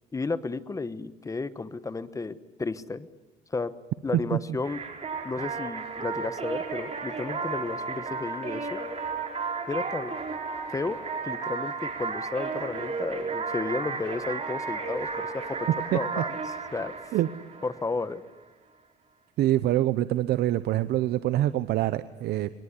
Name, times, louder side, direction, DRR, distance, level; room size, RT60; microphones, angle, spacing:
voice 1, 0.1-3.1 3.5-3.7 4.0-4.8 5.2-8.8 9.7-10.2 10.7-11.0 11.2-16.4 16.7-16.9 17.6-18.2, left 3 dB, 20° left, 14 dB, 1.1 m, -33 dB
sound 1, 4.6-18.1, right 4 dB, 40° right, 4.5 m, -33 dB
voice 2, 19.4-22.5, right 14 dB, 75° right, 13 dB, 0.8 m, -25 dB
22.0 x 19.5 x 9.8 m, 1.2 s
cardioid pair, 110°, 17 cm